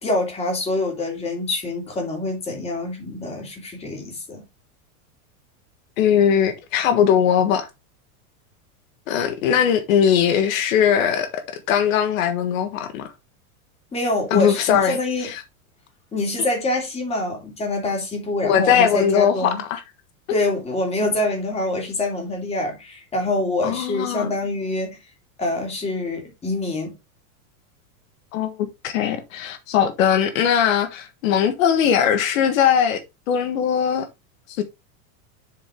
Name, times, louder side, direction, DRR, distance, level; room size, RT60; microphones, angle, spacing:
voice 1, 0.0-4.4 13.9-15.3 16.1-19.6 20.3-25.0 25.4-26.9, left 2 dB, 15° left, 3.0 m, -25 dB
voice 2, 6.0-7.7 9.1-11.4 11.7-13.1 14.3-15.0 15.2-15.3 18.4-19.8 23.6-24.3 28.3-33.0 33.3-34.1 34.6-34.7, left 8 dB, 65° left, 1.5 m, -20 dB
7.7 x 6.8 x 3.6 m
supercardioid pair, 160°, 43 cm